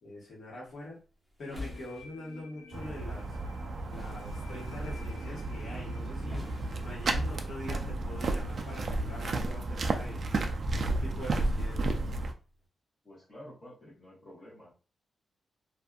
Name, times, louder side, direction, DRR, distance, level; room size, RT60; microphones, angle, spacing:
voice 1, 0.0-1.0 1.4-3.4 3.9-6.4 6.8-10.2 10.7-12.1, left 1 dB, 60° left, -4 dB, 1.4 m, -44 dB
sound 1, 0.6-12.7, left 2 dB, ahead, 0.8 m, -50 dB
sound 2, 1.5-9.0, left 4 dB, 85° left, 0.7 m, -56 dB
sound 3, 2.7-12.3, right 2 dB, 45° right, 0.3 m, -33 dB
voice 2, 13.0-14.7, left 1 dB, 35° left, -9 dB, 1.1 m, -50 dB
2.6 x 2.4 x 2.3 m, 0.36 s
wide cardioid pair, 145°, 0 cm